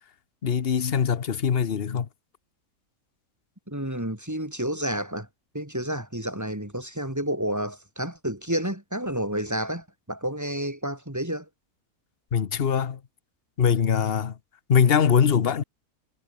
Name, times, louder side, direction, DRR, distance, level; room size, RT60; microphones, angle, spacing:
voice 1, 0.4-2.1 12.3-13.0 13.6-14.4 14.7-15.6, left 7 dB, 45° left, 1.1 m, -22 dB
voice 2, 3.7-5.3 5.5-11.5, right 1 dB, 10° right, 3.6 m, -30 dB
omnidirectional pair, 1.6 m